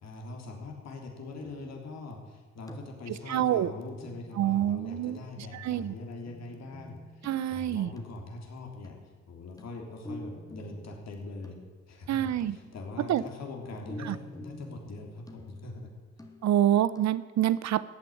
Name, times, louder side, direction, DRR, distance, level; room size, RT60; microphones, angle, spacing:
voice 1, 0.0-9.0 9.3-11.6 11.9-15.9, left 2 dB, 60° left, 2 dB, 3.5 m, -42 dB
sound 1, 1.4-1.9 2.7-3.3 4.0-5.0 6.2-8.3 8.8-9.2 9.6-11.8 12.4-15.8 16.2-16.7 16.9-17.0, left 1 dB, 10° left, 1.8 m, -48 dB
voice 2, 3.3-3.7 4.4-5.2 5.5-5.9 7.2-7.9 12.1-12.6 13.1-13.2 14.0-14.1 16.4-17.8, right 11 dB, 65° right, 17 dB, 0.7 m, -26 dB
14.0 x 9.0 x 9.3 m, 1.4 s
cardioid pair, 90°, 30 cm